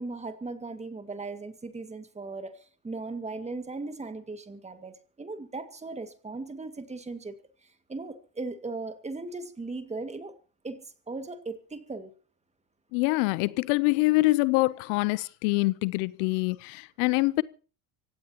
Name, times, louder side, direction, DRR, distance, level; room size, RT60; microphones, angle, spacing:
voice 1, 0.0-7.3 7.6-10.3 10.6-12.1, right 3 dB, 15° right, 2.0 m, -38 dB
voice 2, 12.9-17.4, left 23 dB, 70° left, 0.8 m, -25 dB
25.0 x 17.0 x 2.9 m
supercardioid pair, 120°, 47 cm